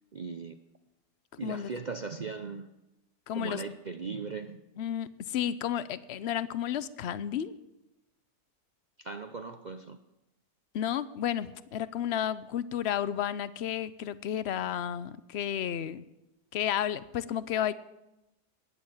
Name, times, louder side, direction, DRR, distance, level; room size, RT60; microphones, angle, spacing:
voice 1, 0.1-0.6 1.4-2.7 3.4-4.6 9.0-10.0, right 4 dB, 55° right, 8 dB, 0.4 m, -38 dB
voice 2, 3.3-3.6 4.8-7.5 10.7-16.0 16.5-17.7, left 10 dB, 60° left, 15 dB, 0.7 m, -32 dB
19.5 x 7.1 x 9.0 m, 0.96 s
omnidirectional pair, 1.7 m